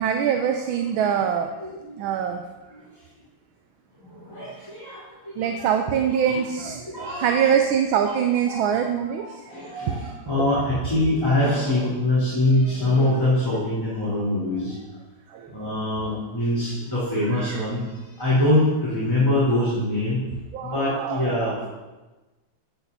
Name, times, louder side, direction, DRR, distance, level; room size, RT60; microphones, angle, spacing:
voice 1, 0.0-1.5 2.0-2.4 5.4-9.4 15.3-15.5 17.3-17.6 20.5-21.4, right 8 dB, 80° right, 5 dB, 1.6 m, -24 dB
voice 2, 1.6-1.9 4.3-5.0 5.4-5.7 6.2-6.4 6.9-7.5 8.0-8.1 8.5-8.8 9.2-14.7 15.5-17.8 18.2-20.2 20.6-21.7, left 1 dB, 10° left, -10 dB, 3.5 m, -24 dB
13.5 x 8.8 x 4.1 m, 1.2 s
omnidirectional pair, 2.2 m